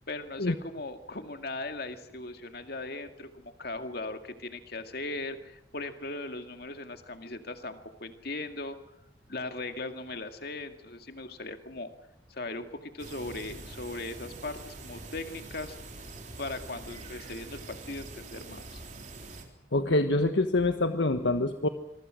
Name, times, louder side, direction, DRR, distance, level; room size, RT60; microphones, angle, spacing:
voice 1, 0.1-8.8 9.3-11.9 12.3-15.8 16.4-18.8, left 2 dB, 55° left, 7 dB, 2.2 m, -38 dB
sound 1, 13.0-19.4, right 2 dB, 40° right, 3.7 m, -44 dB
voice 2, 19.7-21.7, left 2 dB, 70° left, 7 dB, 1.3 m, -25 dB
25.5 x 23.5 x 6.4 m, 0.78 s
head